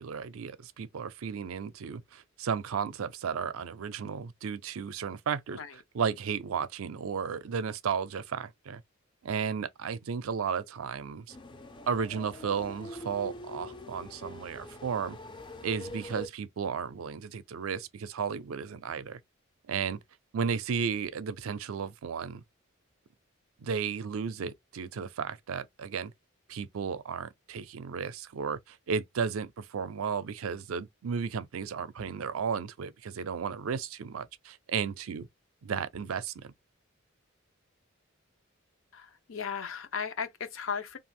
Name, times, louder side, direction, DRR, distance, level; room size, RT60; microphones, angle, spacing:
voice 1, 0.0-5.6 5.9-8.8 9.2-11.4 11.9-15.2 15.6-19.2 19.7-20.0 20.3-22.4 23.6-26.1 26.5-35.3 35.6-36.5, right 6 dB, 85° right, 0.4 m, -34 dB
sound 1, 11.3-16.3, left 1 dB, 25° left, 0.3 m, -44 dB
voice 2, 38.9-41.0, left 6 dB, 70° left, 0.5 m, -36 dB
2.8 x 2.4 x 3.0 m
head